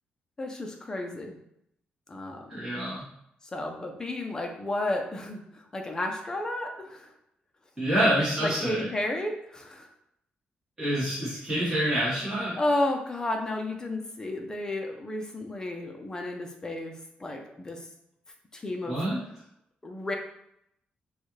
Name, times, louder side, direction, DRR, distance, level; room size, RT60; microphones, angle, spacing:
voice 1, 0.4-1.4 2.1-2.7 3.5-7.1 8.0-8.1 8.4-9.9 12.6-17.9 18.5-19.0 19.8-20.2, left 2 dB, 20° left, 3 dB, 0.7 m, -32 dB
voice 2, 2.5-3.0 7.8-8.9 10.8-12.6 18.9-19.2, right 1 dB, 10° right, -9 dB, 1.7 m, -27 dB
6.7 x 2.5 x 3.2 m, 0.76 s
wide cardioid pair, 150°, 3 cm